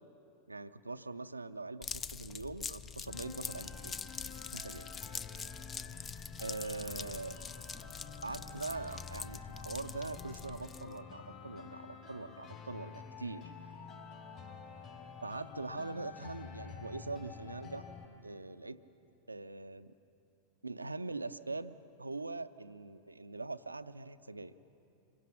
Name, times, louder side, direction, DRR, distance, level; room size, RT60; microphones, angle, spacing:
voice 1, 0.5-4.0 4.5-4.9 6.4-7.3 8.2-13.5 15.2-17.9 18.2-18.8 19.3-19.9 20.6-24.5, right 3 dB, 80° right, 12 dB, 0.5 m, -42 dB
sound 1, 1.8-11.0, left 6 dB, 20° left, 0.5 m, -44 dB
sound 2, 3.1-18.0, left 5 dB, 40° left, 3.9 m, -49 dB
26.5 x 23.0 x 6.0 m, 2.7 s
figure-of-eight pair, 90°, 0 cm